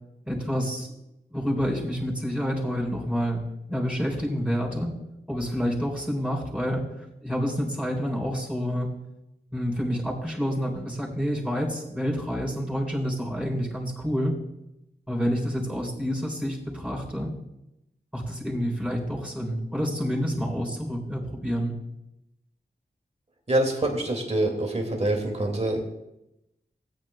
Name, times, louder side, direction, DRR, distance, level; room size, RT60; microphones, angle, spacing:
voice 1, 0.3-0.9 1.3-4.9 5.3-6.9 7.2-8.9 9.5-14.4 15.1-17.3 18.1-21.8, equal, 5° right, -4 dB, 3.8 m, -28 dB
voice 2, 23.5-25.8, right 1 dB, 35° right, 2 dB, 2.2 m, -25 dB
17.5 x 9.1 x 2.3 m, 0.89 s
wide cardioid pair, 60°, 18 cm